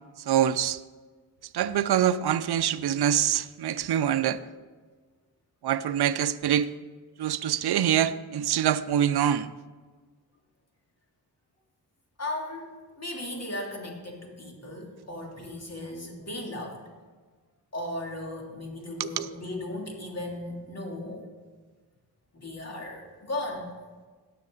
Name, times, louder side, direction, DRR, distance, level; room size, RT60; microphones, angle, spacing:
voice 1, 0.3-0.8 1.5-4.4 5.6-6.7 7.2-9.5 19.0-19.3, right 10 dB, 65° right, 0.6 m, -25 dB
voice 2, 12.2-16.8 17.7-21.2 22.3-23.7, left 1 dB, 40° left, 3.2 m, -36 dB
18.5 x 6.6 x 3.9 m
cardioid pair, 50°, 41 cm